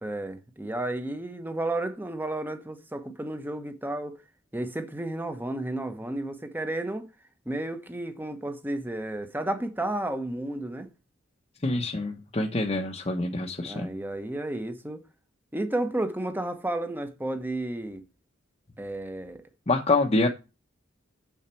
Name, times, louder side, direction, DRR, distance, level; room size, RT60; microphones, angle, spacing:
voice 1, 0.0-4.2 4.5-7.1 7.5-10.9 13.6-15.0 15.5-18.0 18.8-19.4, right 1 dB, 10° right, 1.0 m, -32 dB
voice 2, 11.6-13.9 19.7-20.3, left 2 dB, 30° left, 0.9 m, -26 dB
7.4 x 6.4 x 4.4 m
head